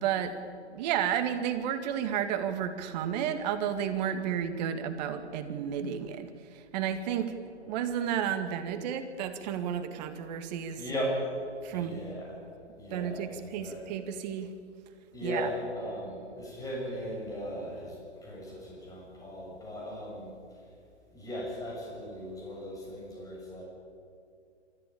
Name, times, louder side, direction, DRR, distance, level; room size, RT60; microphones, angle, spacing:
voice 1, 0.0-0.3 0.7-7.4 7.7-10.8 11.6-12.0 12.9-14.5 15.2-15.5, right 9 dB, 40° right, 8 dB, 2.1 m, -32 dB
voice 2, 10.8-11.2 11.7-12.3 12.8-13.8 15.1-18.0 18.2-20.3 21.1-23.6, equal, 10° left, -3 dB, 7.0 m, -37 dB
27.5 x 14.0 x 8.8 m, 2.4 s
hypercardioid pair, 130°, 34 cm